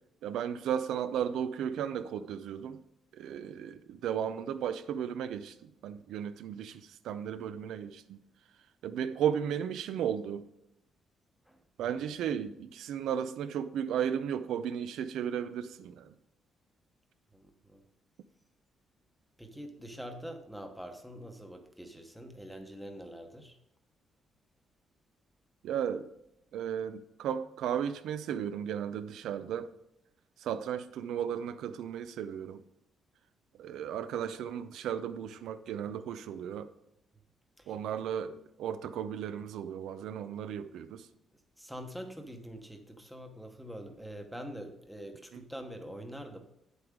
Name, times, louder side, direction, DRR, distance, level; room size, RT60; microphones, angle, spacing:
voice 1, 0.2-2.8 3.1-8.2 8.8-10.5 11.8-16.1 25.6-26.1 26.5-29.7 30.4-32.6 33.6-36.7 37.7-41.1 45.3-45.4, right 8 dB, 85° right, 0.6 m, -35 dB
voice 2, 11.5-12.1 17.3-17.8 19.4-23.6 37.6-38.0 41.6-46.4, equal, ahead, 1.0 m, -45 dB
9.5 x 8.1 x 3.7 m
cardioid pair, 180°, 0 cm